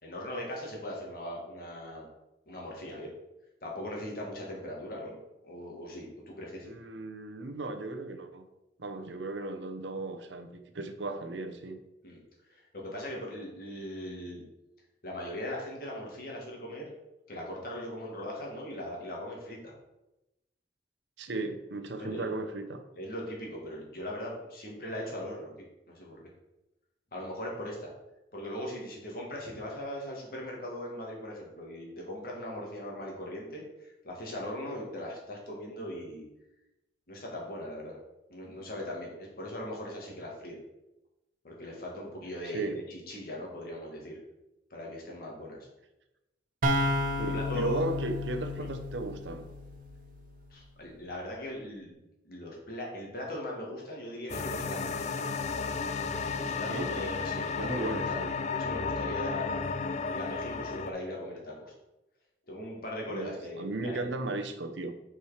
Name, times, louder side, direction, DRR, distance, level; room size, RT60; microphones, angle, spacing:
voice 1, 0.0-2.1 2.5-3.1 3.6-5.2 5.4-6.7 12.0-12.2 12.5-14.4 15.0-16.9 17.3-19.7 22.0-22.3 23.0-25.5 25.9-26.2 27.1-27.9 28.3-36.3 37.1-38.0 38.3-40.6 41.4-44.2 44.7-45.7 47.2-47.9 48.6-48.7 50.5-51.9 52.2-55.1 56.3-58.2 58.5-59.7 60.1-61.7 62.5-64.0, left 1 dB, 55° left, -2 dB, 2.0 m, -39 dB
voice 2, 6.6-8.4 8.8-11.8 21.2-22.8 42.4-42.8 47.2-49.5 56.7-56.9 57.6-58.3 63.1-64.9, right 2 dB, 85° right, 8 dB, 0.7 m, -36 dB
sound 1, 46.6-50.3, left 1 dB, 50° right, 0.9 m, -32 dB
sound 2, 54.3-60.9, left 4 dB, 40° left, 0.4 m, -33 dB
5.6 x 4.8 x 5.0 m, 0.94 s
head